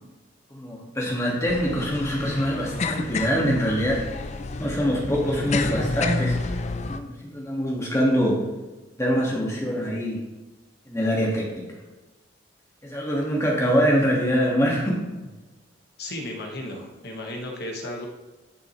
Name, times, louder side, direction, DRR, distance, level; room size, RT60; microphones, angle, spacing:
voice 1, 0.5-4.2 4.6-6.6 6.9-8.4 9.0-10.2 10.9-11.6 12.8-15.1, equal, 15° left, -3 dB, 1.8 m, -24 dB
sound 1, 1.5-7.0, left 3 dB, 35° left, 0.4 m, -30 dB
voice 2, 16.0-18.1, left 1 dB, 55° left, 1 dB, 1.4 m, -34 dB
10.5 x 6.1 x 3.2 m, 1.2 s
head